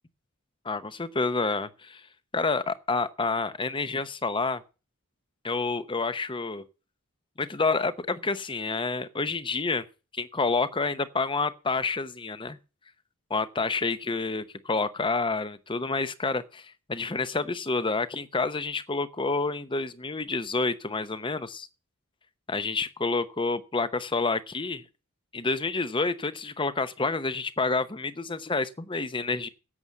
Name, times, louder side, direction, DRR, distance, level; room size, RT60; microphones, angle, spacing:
voice 1, 0.6-2.0 2.3-4.6 5.4-6.6 7.4-9.8 10.1-12.6 13.3-21.7 22.5-24.8 25.3-29.5, left 3 dB, 20° left, 0.8 m, -28 dB
11.0 x 8.0 x 7.3 m
head